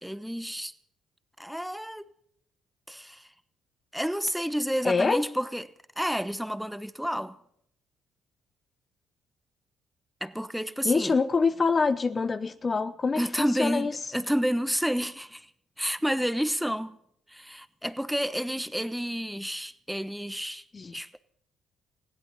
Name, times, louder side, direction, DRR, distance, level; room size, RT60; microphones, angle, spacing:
voice 1, 0.0-0.7 1.4-2.0 2.9-3.3 3.9-7.4 10.2-11.1 13.2-15.5 15.8-17.0 17.3-20.7 20.9-21.2, equal, ahead, 1.2 m, -30 dB
voice 2, 4.8-5.2 10.8-13.9 20.7-20.9, left 4 dB, 35° left, 0.8 m, -25 dB
20.0 x 16.0 x 4.3 m
supercardioid pair, 60°, 0 cm